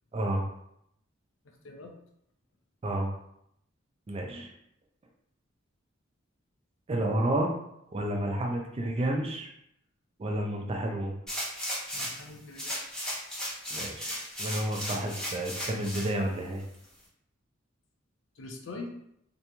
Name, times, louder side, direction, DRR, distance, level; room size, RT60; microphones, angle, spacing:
voice 1, 0.1-0.5 2.8-3.1 4.1-4.5 6.9-7.5 7.9-9.5 10.2-11.2 13.7-16.6, right 1 dB, 30° right, 2 dB, 0.4 m, -30 dB
sound 1, 11.3-12.2 12.6-16.1 16.6-16.7, equal, 5° left, 0.8 m, -35 dB
voice 2, 11.9-13.1 18.4-18.9, left 3 dB, 65° left, 2 dB, 0.5 m, -43 dB
2.8 x 2.6 x 2.2 m, 0.75 s
head